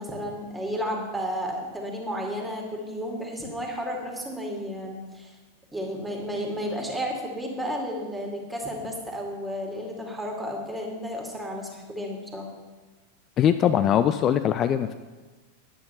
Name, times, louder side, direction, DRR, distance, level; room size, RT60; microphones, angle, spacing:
voice 1, 0.0-5.3 5.7-12.5, equal, 5° right, 0 dB, 2.4 m, -32 dB
voice 2, 13.4-14.9, left 9 dB, 30° left, 10 dB, 0.4 m, -21 dB
11.0 x 8.6 x 5.7 m, 1.3 s
figure-of-eight pair, 90°, 0 cm